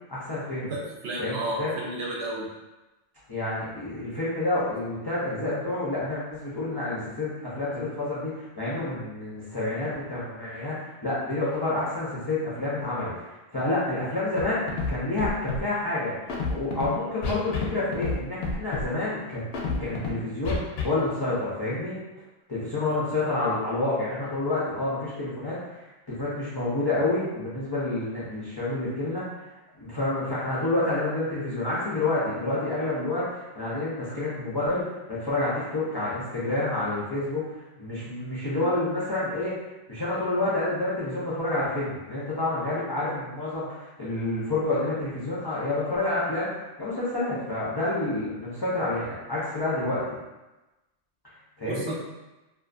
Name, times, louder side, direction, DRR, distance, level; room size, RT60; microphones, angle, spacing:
voice 1, 0.1-0.7 1.2-1.7 3.3-10.8 11.0-22.0 22.5-29.2 29.8-39.5 39.9-46.5 46.8-50.0 51.6-51.9, left 2 dB, 35° left, -10 dB, 0.4 m, -29 dB
voice 2, 0.7-2.5 51.6-51.9, right 1 dB, 70° right, -3 dB, 0.9 m, -32 dB
Scratching (performance technique), 14.4-14.5 14.7-14.9 15.2-15.6 16.3-16.9 17.2-17.7 17.9-18.2 18.4-18.8 19.5-20.1 20.5-20.8, left 4 dB, 65° left, 0.7 m, -28 dB
2.5 x 2.4 x 2.4 m, 1.1 s
omnidirectional pair, 1.2 m